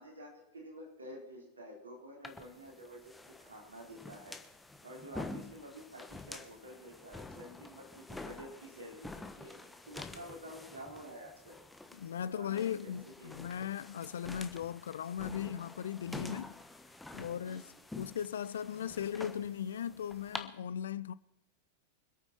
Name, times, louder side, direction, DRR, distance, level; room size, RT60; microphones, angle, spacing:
voice 1, 0.0-3.1 3.4-4.4 4.8-9.6 9.9-11.6 12.2-13.5 17.4-17.8, equal, 75° right, 4.6 m, -50 dB
sound 1, 2.2-20.4, left 2 dB, 5° left, 1.3 m, -48 dB
voice 2, 11.9-16.6 17.1-21.1, left 9 dB, 65° left, 0.5 m, -38 dB
25.5 x 8.9 x 4.5 m
figure-of-eight pair, 90°, 0 cm